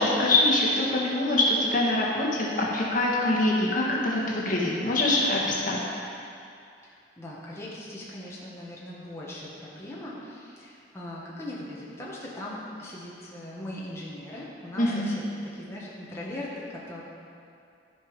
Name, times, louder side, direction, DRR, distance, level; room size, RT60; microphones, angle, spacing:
voice 1, 0.0-6.1 14.8-15.2, left 2 dB, 45° left, -4 dB, 1.6 m, -24 dB
voice 2, 6.8-15.2 15.5-17.0, left 1 dB, 15° left, -6 dB, 1.4 m, -39 dB
14.0 x 5.2 x 5.2 m, 2.5 s
head